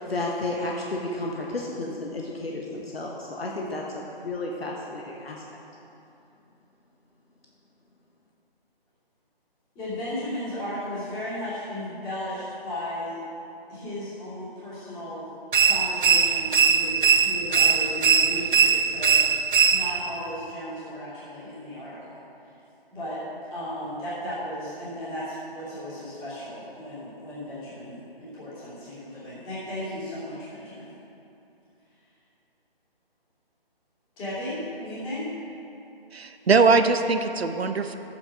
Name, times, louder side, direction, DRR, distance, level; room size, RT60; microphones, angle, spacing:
voice 1, 0.0-5.6, left 2 dB, 80° left, -1 dB, 1.4 m, -32 dB
voice 2, 9.7-13.2 13.7-15.3 15.6-22.2 22.9-23.2 23.5-30.9 34.2-35.3, equal, 15° left, -12 dB, 2.9 m, -35 dB
sound 1, 15.5-20.1, right 6 dB, 55° right, 0.6 m, -21 dB
voice 3, 36.1-37.9, right 4 dB, 85° right, 8 dB, 0.8 m, -21 dB
10.5 x 8.6 x 5.1 m, 2.8 s
figure-of-eight pair, 160°, 30 cm